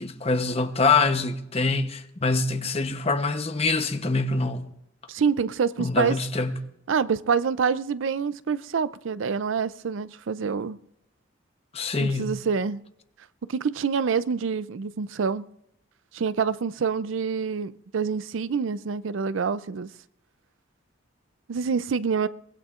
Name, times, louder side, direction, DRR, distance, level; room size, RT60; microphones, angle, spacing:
voice 1, 0.0-4.7 5.8-6.6 11.7-12.3, left 3 dB, 30° left, 0.9 m, -25 dB
voice 2, 5.1-6.2 6.9-10.8 12.0-12.8 13.5-15.4 16.1-19.9 21.5-22.3, right 6 dB, 80° right, 0.5 m, -26 dB
23.0 x 19.0 x 2.5 m
head